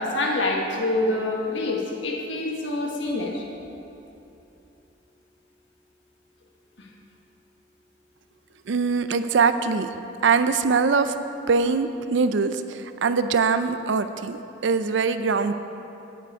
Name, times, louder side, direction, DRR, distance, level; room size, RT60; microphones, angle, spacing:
voice 1, 0.0-3.4 6.8-6.9 11.0-11.1, left 2 dB, 75° left, 0 dB, 1.4 m, -26 dB
voice 2, 8.7-9.9 10.2-11.1 11.5-15.5, right 5 dB, 75° right, 10 dB, 0.5 m, -22 dB
9.4 x 8.4 x 4.7 m, 2.9 s
head